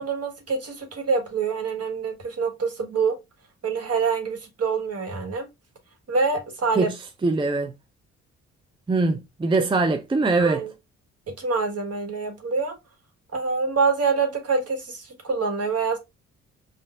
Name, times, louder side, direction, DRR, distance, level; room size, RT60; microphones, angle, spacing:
voice 1, 0.0-3.2 3.6-5.5 6.1-6.9 10.4-10.7 11.4-12.8 13.3-16.0, right 4 dB, 45° right, 1.5 m, -26 dB
voice 2, 7.2-7.7 8.9-10.6, right 3 dB, 15° right, 0.5 m, -22 dB
5.4 x 2.6 x 2.3 m
hypercardioid pair, 45°, 34 cm